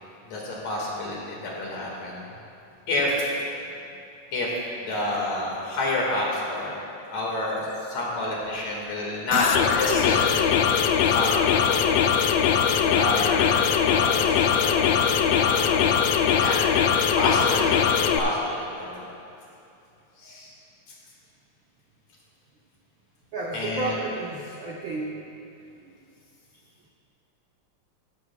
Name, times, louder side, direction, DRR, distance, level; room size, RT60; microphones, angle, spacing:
voice 1, 0.2-2.2 2.9-3.3 4.3-4.5 4.8-6.8 7.1-10.3 10.7-11.9 12.8-14.7 15.3-16.0 16.3-16.6 17.2-19.0 20.2-20.5 23.5-23.9, left 2 dB, 65° left, -3 dB, 3.1 m, -29 dB
sound 1, 9.3-18.2, left 7 dB, 90° left, 1.4 m, -21 dB
voice 2, 23.3-25.1, right 2 dB, 75° right, -3 dB, 1.1 m, -31 dB
14.0 x 13.0 x 2.3 m, 2.7 s
omnidirectional pair, 3.5 m